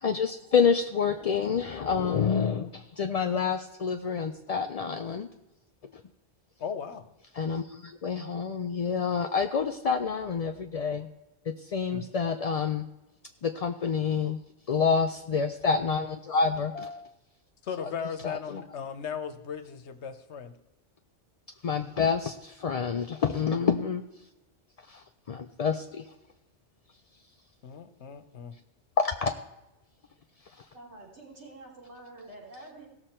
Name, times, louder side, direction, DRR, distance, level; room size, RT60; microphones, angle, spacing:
voice 1, 0.0-5.3 7.3-11.1 11.7-12.8 13.4-14.4 14.7-17.1 17.8-17.9 18.2-18.6 21.6-24.0 24.9-26.0 29.0-29.3, left 6 dB, 50° left, 6 dB, 0.4 m, -28 dB
voice 2, 6.6-7.1 11.9-12.0 17.6-20.5 23.4-23.7 27.6-28.5, left 7 dB, 75° left, 10 dB, 1.2 m, -37 dB
voice 3, 30.7-32.9, right 2 dB, 75° right, -4 dB, 3.6 m, -47 dB
17.0 x 6.8 x 4.4 m, 0.98 s
omnidirectional pair, 1.2 m